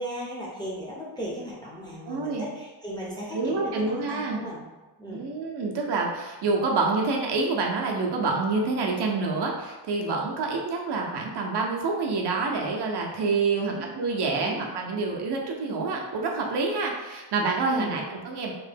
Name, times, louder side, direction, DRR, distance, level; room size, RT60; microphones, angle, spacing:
voice 1, 0.0-4.7 5.0-5.3 13.5-13.8 14.4-14.6 17.7-18.0, right 1 dB, 10° left, -7 dB, 0.5 m, -36 dB
voice 2, 2.1-2.5 3.3-4.4 5.1-18.5, right 3 dB, 65° right, 0 dB, 0.6 m, -27 dB
3.0 x 2.1 x 3.3 m, 1.1 s
wide cardioid pair, 175°, 44 cm